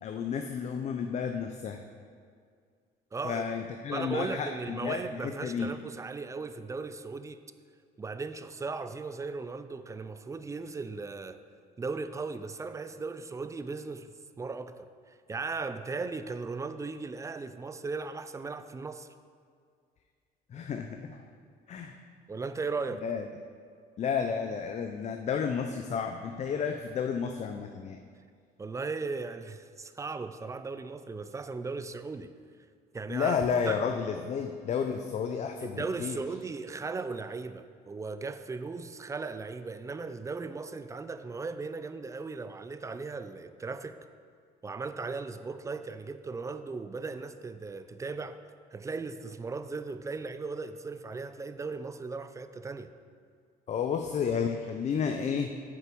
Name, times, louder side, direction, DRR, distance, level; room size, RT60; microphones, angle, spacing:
voice 1, 0.0-1.8 3.2-5.7 20.5-21.2 21.7-22.0 23.0-23.2 24.0-28.0 33.1-36.2 53.7-55.5, left 6 dB, 45° left, 0.5 m, -31 dB
voice 2, 3.1-3.4 3.9-7.4 8.0-11.4 11.8-14.1 14.4-14.9 15.3-19.1 22.3-23.0 28.6-32.3 32.9-33.4 33.7-33.8 35.6-44.0 44.6-48.4 48.7-52.9, right 4 dB, 20° right, 0.4 m, -37 dB
9.0 x 6.8 x 4.6 m
cardioid pair, 110°, 17 cm